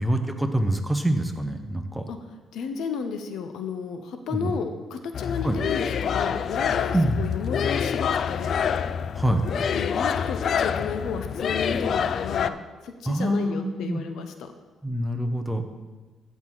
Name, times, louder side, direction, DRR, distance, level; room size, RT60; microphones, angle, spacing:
voice 1, 0.0-2.1 4.3-4.5 5.4-5.6 6.9-7.2 9.1-9.4 13.1-14.0 14.8-15.6, right 1 dB, 5° right, 5 dB, 1.0 m, -25 dB
voice 2, 2.5-8.6 9.7-12.6 12.8-14.5, left 6 dB, 80° left, 7 dB, 0.8 m, -33 dB
sound 1, 5.1-12.5, left 7 dB, 60° left, 0.3 m, -26 dB
15.0 x 6.2 x 4.0 m, 1.3 s
cardioid pair, 90°, 0 cm